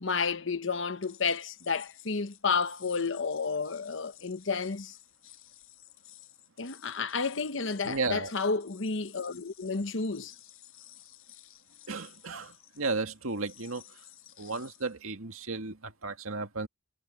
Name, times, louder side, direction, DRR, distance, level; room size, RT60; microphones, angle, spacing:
voice 1, 0.0-5.0 6.6-10.3, left 4 dB, 60° left, 1.0 m, -31 dB
sound 1, 1.0-15.0, left 15 dB, 80° left, 5.4 m, -55 dB
voice 2, 7.8-8.3 11.9-14.0 14.4-16.7, right 3 dB, 80° right, 1.9 m, -34 dB
head